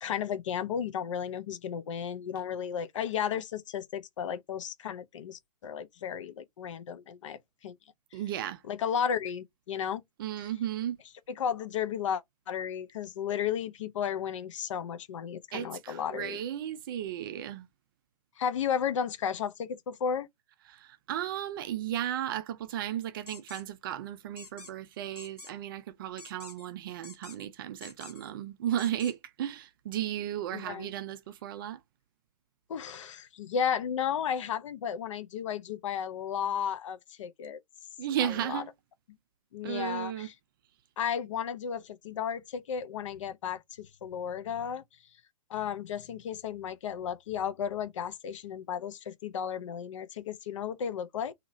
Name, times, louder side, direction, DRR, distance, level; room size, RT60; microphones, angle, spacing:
voice 1, 0.0-7.8 8.7-10.0 11.4-16.4 18.4-20.3 30.5-30.9 32.7-37.6 38.2-38.6 39.5-40.3 41.0-44.8 45.5-51.3, left 8 dB, 50° left, 0.5 m, -34 dB
voice 2, 8.1-8.6 10.2-11.0 15.5-17.7 20.7-31.8 38.0-38.7 39.6-40.3, right 11 dB, 35° right, 0.4 m, -34 dB
sound 1, 23.3-23.6 24.4-24.7 25.1-25.5 26.2-26.7 27.0-27.5 27.8-28.3 28.8-29.1, left 4 dB, 80° left, 0.9 m, -48 dB
2.8 x 2.8 x 2.4 m
figure-of-eight pair, 125°, 20 cm